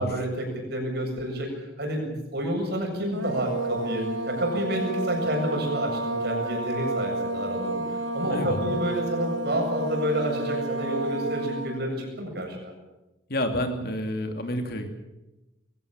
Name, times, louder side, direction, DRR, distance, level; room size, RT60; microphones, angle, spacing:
voice 1, 0.0-12.7, equal, 55° right, 2 dB, 7.7 m, -29 dB
sound 1, 3.1-11.8, right 2 dB, 90° right, 2.2 m, -31 dB
voice 2, 8.3-8.7 13.3-14.9, equal, 55° left, 5 dB, 2.8 m, -29 dB
22.0 x 17.0 x 8.9 m, 0.99 s
head